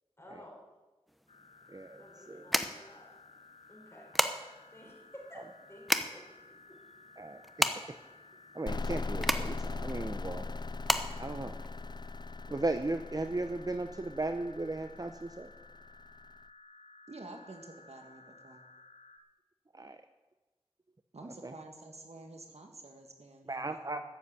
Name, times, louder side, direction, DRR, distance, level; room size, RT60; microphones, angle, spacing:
voice 1, 0.2-0.7 2.0-3.1 3.7-4.1 4.7-6.3 6.7-6.8, equal, 25° left, -2 dB, 5.3 m, -52 dB
sound 1, 1.1-12.2, equal, ahead, 0.9 m, -35 dB
sound 2, 1.3-19.2, left 3 dB, 70° left, 1.1 m, -57 dB
voice 2, 1.7-2.5 7.2-7.7 8.5-10.5 11.2-11.6 12.5-15.5 19.7-20.0 21.4-21.5 23.5-24.0, right 2 dB, 35° right, 8 dB, 0.7 m, -36 dB
sound 3, 8.7-16.2, left 3 dB, 45° left, 0.4 m, -40 dB
voice 3, 17.1-18.6 21.1-24.0, right 2 dB, 80° right, 3 dB, 1.8 m, -49 dB
13.5 x 7.8 x 8.5 m, 1.2 s
wide cardioid pair, 55°, 11 cm